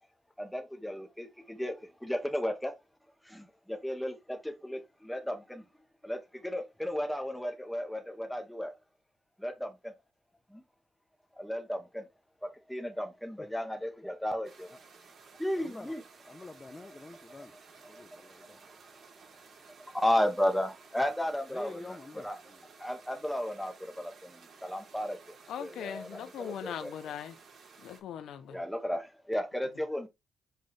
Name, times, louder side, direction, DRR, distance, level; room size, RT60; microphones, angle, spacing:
voice 1, 0.4-2.7 3.2-5.6 6.0-8.7 9.4-9.9 10.5-10.6 11.4-12.1 12.4-14.8 15.4-16.0 17.9-18.0 18.6-19.0 19.9-21.8 22.2-22.4 22.8-26.9 28.5-30.1, left 1 dB, 5° left, 1.9 m, -34 dB
sound 1, 14.4-28.0, right 5 dB, 55° right, 4.0 m, -56 dB
voice 2, 15.6-15.9 16.3-18.6 21.5-22.7, left 3 dB, 20° left, 0.9 m, -47 dB
voice 3, 25.5-27.3 27.8-28.6, left 9 dB, 75° left, 1.0 m, -40 dB
7.7 x 5.4 x 3.4 m
cardioid pair, 90°, 0 cm